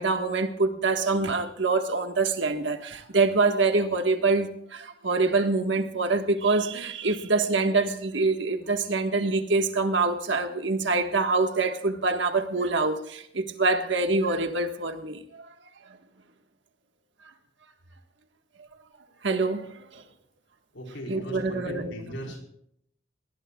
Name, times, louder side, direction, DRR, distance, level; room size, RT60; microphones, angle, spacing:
voice 1, 0.0-15.4 19.2-20.0 21.1-21.9, right 3 dB, 70° right, 1.6 m, -25 dB
voice 2, 20.7-22.4, equal, 85° left, 4.5 m, -38 dB
21.0 x 18.5 x 2.4 m
head